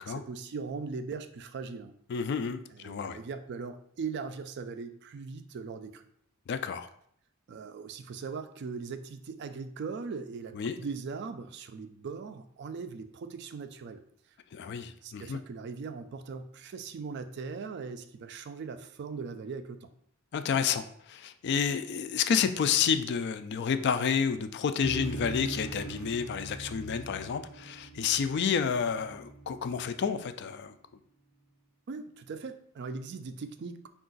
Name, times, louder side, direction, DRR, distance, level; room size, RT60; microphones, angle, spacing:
voice 1, 0.1-1.9 2.7-6.0 7.5-14.0 14.6-19.9 31.9-33.9, right 5 dB, 50° right, 9 dB, 0.3 m, -40 dB
voice 2, 2.1-3.2 6.5-6.9 10.5-10.8 14.5-15.4 20.3-30.7, left 7 dB, 50° left, 10 dB, 0.3 m, -30 dB
sound 1, 24.8-30.4, right 3 dB, 80° left, 1.1 m, -42 dB
4.6 x 2.4 x 3.8 m, 0.68 s
head